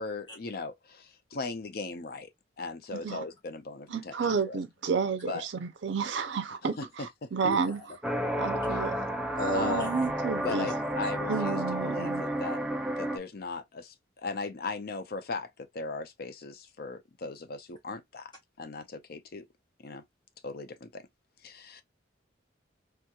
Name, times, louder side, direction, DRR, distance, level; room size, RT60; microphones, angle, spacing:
voice 1, 0.0-2.3 2.6-4.1 4.5-4.6 5.3-5.5 6.8-6.9 8.7-8.8 9.5-10.1 10.4-12.6 13.0-15.5 15.7-18.3 18.6-19.5 19.8-20.0 20.4-21.1 21.4-21.8, left 3 dB, 55° left, 0.5 m, -38 dB
voice 2, 2.9-3.2 3.9-7.8 8.4-9.0 9.6-10.7 11.3-12.2, right 5 dB, 70° right, 0.5 m, -31 dB
sound 1, 8.0-13.2, right 1 dB, 5° right, 0.4 m, -31 dB
voice 3, 9.4-9.9, equal, 25° left, 1.0 m, -30 dB
3.4 x 2.8 x 2.2 m
head